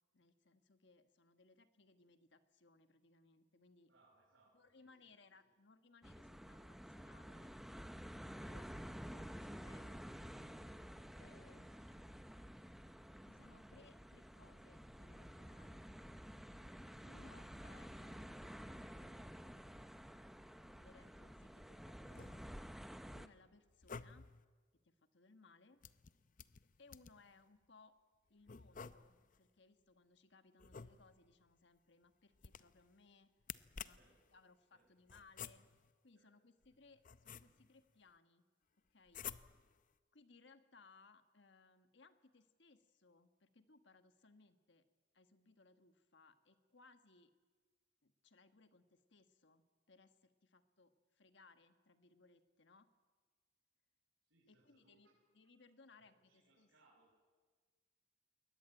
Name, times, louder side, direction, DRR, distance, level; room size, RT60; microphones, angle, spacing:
voice 1, 0.1-3.9 4.5-7.6 8.4-8.8 9.1-10.0 11.2-12.1 13.3-15.8 17.0-19.0 20.7-22.6 23.1-24.3 24.7-25.8 26.8-28.0 28.3-33.3 33.8-34.0 34.3-35.7 36.0-38.4 38.9-39.2 40.1-44.8 45.1-47.3 48.0-52.9 54.5-55.1 55.3-56.7, left 3 dB, 65° left, 9 dB, 1.4 m, -66 dB
voice 2, 3.9-5.5 33.9-34.4 34.7-35.1 36.2-36.3 54.2-55.3 55.9-57.2, right 2 dB, 75° right, -4 dB, 6.4 m, -74 dB
sound 1, 6.0-23.3, equal, ahead, 0.7 m, -52 dB
sound 2, 22.0-22.7 23.7-24.4 25.8-27.3 28.5-29.4 30.6-31.4 32.4-32.9 33.4-34.2 35.1-35.9 36.6-37.8 39.1-39.8, left 7 dB, 40° left, 0.6 m, -52 dB
22.0 x 18.5 x 9.2 m, 1.5 s
head